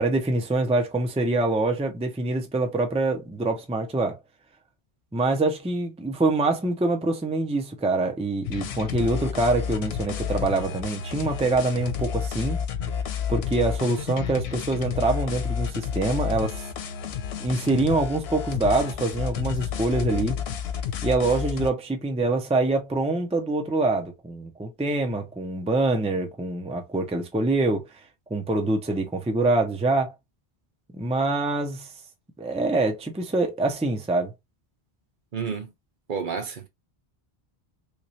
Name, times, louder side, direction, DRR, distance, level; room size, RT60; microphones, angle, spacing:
voice 1, 0.0-4.2 5.1-12.6 13.3-16.7 17.4-20.4 21.0-27.8 28.3-30.1 30.9-31.9 32.4-34.3, right 2 dB, 10° right, 0.5 m, -25 dB
sound 1, 8.4-21.7, left 7 dB, 85° left, 0.8 m, -30 dB
voice 2, 35.3-35.7 36.1-36.7, right 6 dB, 55° right, 0.9 m, -30 dB
3.2 x 3.1 x 2.7 m
omnidirectional pair, 1.0 m